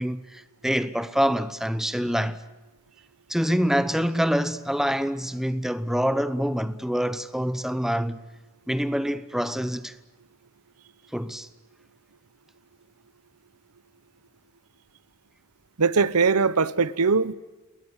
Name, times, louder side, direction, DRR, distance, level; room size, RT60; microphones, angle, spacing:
voice 1, 0.0-2.4 3.3-8.2 8.7-9.9 11.1-11.5, equal, ahead, 0.8 m, -26 dB
voice 2, 15.8-17.3, right 5 dB, 85° right, 0.9 m, -21 dB
28.5 x 21.0 x 8.1 m
head